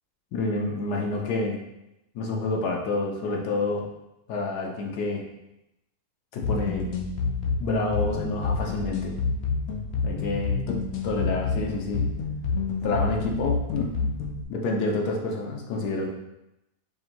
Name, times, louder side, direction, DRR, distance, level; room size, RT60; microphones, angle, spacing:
voice 1, 0.3-1.6 2.1-3.8 4.3-5.2 6.3-6.9 7.6-9.1 10.0-10.8 11.0-12.1 12.8-13.9 14.5-16.1, left 3 dB, 90° left, 0 dB, 1.2 m, -28 dB
sound 1, 6.4-14.4, left 4 dB, 65° left, 0.8 m, -28 dB
5.2 x 2.5 x 2.9 m, 0.90 s
omnidirectional pair, 1.6 m